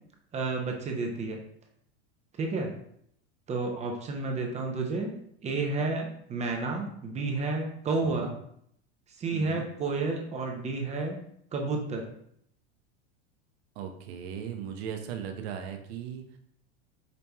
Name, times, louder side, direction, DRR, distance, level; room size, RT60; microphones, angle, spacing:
voice 1, 0.3-1.4 2.4-2.7 3.5-5.1 5.4-8.3 9.2-11.2 11.5-12.1, right 3 dB, 20° right, 1 dB, 0.6 m, -31 dB
voice 2, 8.0-8.4 9.3-9.7 13.8-16.4, right 8 dB, 65° right, 5 dB, 0.7 m, -38 dB
5.1 x 2.8 x 2.2 m, 0.69 s
supercardioid pair, 130°, 33 cm